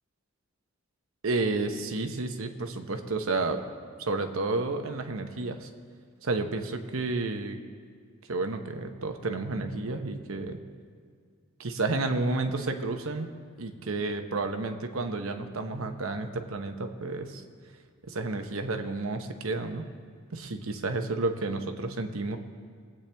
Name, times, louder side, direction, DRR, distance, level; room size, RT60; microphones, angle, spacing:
voice 1, 1.2-3.6 4.0-5.7 6.2-7.6 8.3-10.6 11.6-13.3 13.6-17.4 18.1-19.9 20.3-22.4, right 3 dB, 80° right, 6 dB, 1.0 m, -31 dB
20.5 x 8.6 x 3.4 m, 2.1 s
head